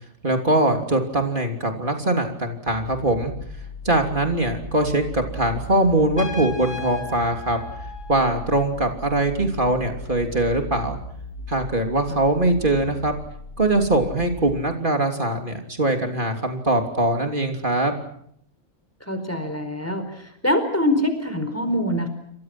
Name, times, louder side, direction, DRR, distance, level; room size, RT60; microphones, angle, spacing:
voice 1, 0.2-3.3 3.8-7.6 8.1-11.0 11.5-13.1 13.6-17.9, right 2 dB, 35° right, 4 dB, 3.4 m, -22 dB
sound 1, 2.7-14.6, left 1 dB, 85° left, 3.0 m, -37 dB
Trumpet, 6.2-8.8, left 5 dB, 55° left, 4.2 m, -37 dB
voice 2, 19.1-22.1, left 1 dB, 10° left, 8 dB, 4.5 m, -24 dB
29.0 x 24.5 x 6.1 m, 0.70 s
omnidirectional pair, 1.4 m